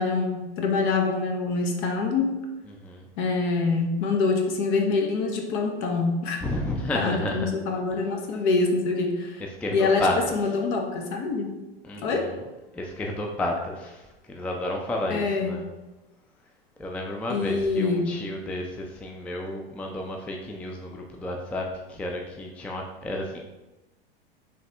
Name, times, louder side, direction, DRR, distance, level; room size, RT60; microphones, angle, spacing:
voice 1, 0.0-2.4 3.2-6.4 6.9-9.4 9.7-11.6 12.0-12.3 15.1-15.5 17.3-18.1, left 4 dB, 55° left, 3 dB, 1.0 m, -25 dB
voice 2, 6.4-7.5 9.6-10.4 11.8-12.4 12.7-14.0 14.3-15.6 16.8-23.4, left 1 dB, 5° left, 1 dB, 0.3 m, -31 dB
4.7 x 3.2 x 3.4 m, 1.1 s
hypercardioid pair, 100°, 31 cm